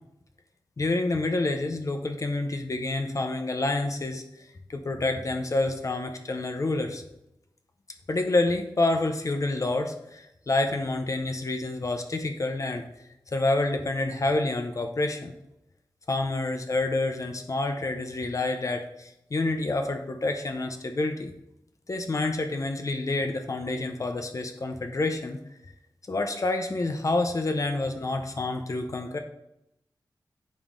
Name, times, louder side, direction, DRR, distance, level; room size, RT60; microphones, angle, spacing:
voice 1, 0.8-4.2 4.7-7.0 8.1-12.8 13.3-15.3 16.1-21.3 21.9-25.4 26.1-29.2, left 2 dB, 45° left, 5 dB, 0.7 m, -28 dB
7.1 x 5.2 x 3.7 m, 0.83 s
wide cardioid pair, 90°, 8 cm